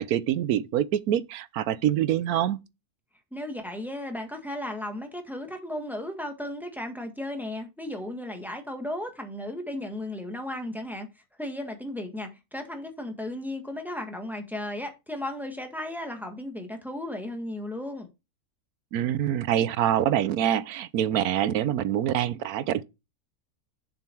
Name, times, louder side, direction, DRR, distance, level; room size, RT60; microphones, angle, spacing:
voice 1, 0.0-2.6 18.9-22.8, right 11 dB, 80° right, 1.1 m, -25 dB
voice 2, 3.3-11.1 11.4-18.1, left 1 dB, ahead, 1.5 m, -35 dB
7.3 x 5.4 x 4.4 m
omnidirectional pair, 1.5 m